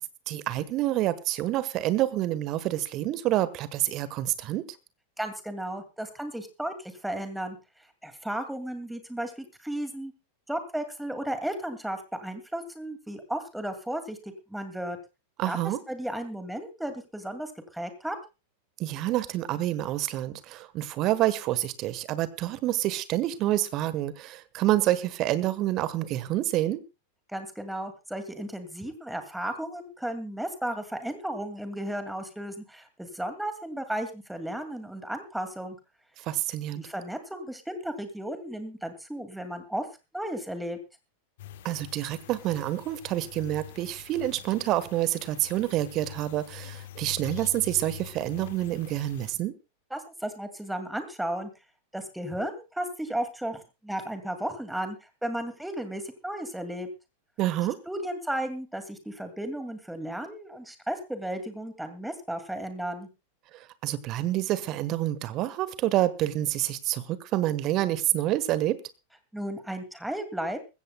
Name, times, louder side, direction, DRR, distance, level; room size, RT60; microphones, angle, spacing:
voice 1, 0.3-4.6 15.4-15.8 18.8-26.8 36.2-36.8 41.6-49.5 57.4-57.8 63.5-68.8, right 14 dB, 35° right, 16 dB, 1.3 m, -28 dB
voice 2, 5.2-7.6 8.0-10.1 10.5-14.2 14.5-15.0 15.5-15.6 15.9-18.2 27.3-35.8 36.8-39.9 40.1-40.8 49.9-51.5 51.9-55.0 55.2-56.9 57.9-63.1 69.3-70.6, right 1 dB, 5° right, 8 dB, 2.3 m, -34 dB
sound 1, 41.4-49.3, left 12 dB, 55° left, 1.1 m, -45 dB
21.0 x 16.0 x 2.2 m, 0.28 s
figure-of-eight pair, 90°, 0 cm